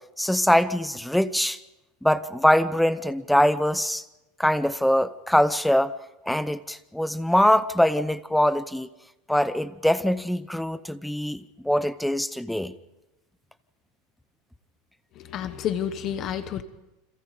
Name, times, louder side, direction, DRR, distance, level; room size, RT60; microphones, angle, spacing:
voice 1, 0.2-1.6 2.0-4.0 4.4-5.9 6.3-8.9 9.3-12.7, equal, ahead, 13 dB, 0.7 m, -23 dB
voice 2, 15.2-16.6, left 9 dB, 30° left, 11 dB, 1.1 m, -30 dB
28.5 x 26.5 x 5.1 m, 0.97 s
supercardioid pair, 170°, 0 cm